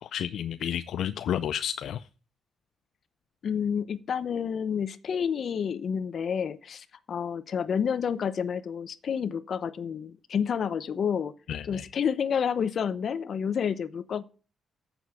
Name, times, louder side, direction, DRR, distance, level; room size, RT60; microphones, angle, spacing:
voice 1, 0.0-2.1 11.5-11.9, left 10 dB, 75° left, 0.4 m, -31 dB
voice 2, 3.4-11.3 11.7-14.2, left 7 dB, 55° left, 0.8 m, -29 dB
8.0 x 7.0 x 7.1 m
cardioid pair, 100°, 0 cm